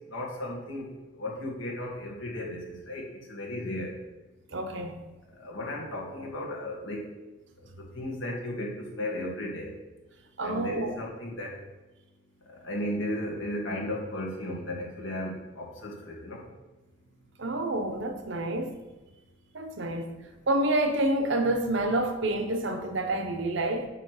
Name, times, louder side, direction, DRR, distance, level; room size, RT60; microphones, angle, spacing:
voice 1, 0.1-0.9 1.2-3.0 3.3-3.9 5.4-7.0 7.9-8.7 9.0-9.7 10.4-11.5 12.6-16.4, left 1 dB, 70° left, 1.8 m, -35 dB
voice 2, 4.5-4.9 10.4-11.0 17.4-18.7 19.5-20.1 20.5-23.9, right 1 dB, 65° right, 0.8 m, -28 dB
8.8 x 3.1 x 6.3 m
head